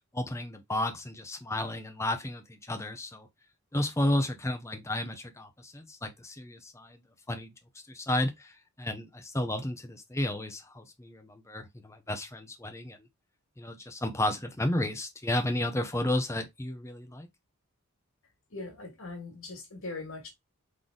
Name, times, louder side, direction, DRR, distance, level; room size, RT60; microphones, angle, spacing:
voice 1, 0.1-3.3 3.7-7.0 7.3-7.5 7.9-13.0 13.6-17.3, left 1 dB, 10° left, 0.7 m, -32 dB
voice 2, 18.5-20.3, left 3 dB, 65° left, 1.8 m, -40 dB
3.9 x 3.2 x 3.8 m
head